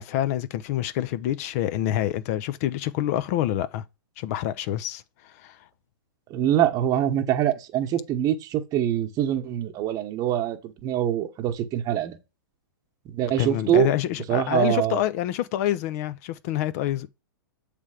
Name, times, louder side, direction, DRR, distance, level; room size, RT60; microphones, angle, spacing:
voice 1, 0.0-3.8 4.2-5.6 13.4-17.1, left 12 dB, 45° left, 0.5 m, -27 dB
voice 2, 6.3-12.2 13.0-13.9 14.3-15.0, right 11 dB, 30° right, 1.1 m, -24 dB
7.4 x 3.3 x 4.9 m
hypercardioid pair, 115°, 12 cm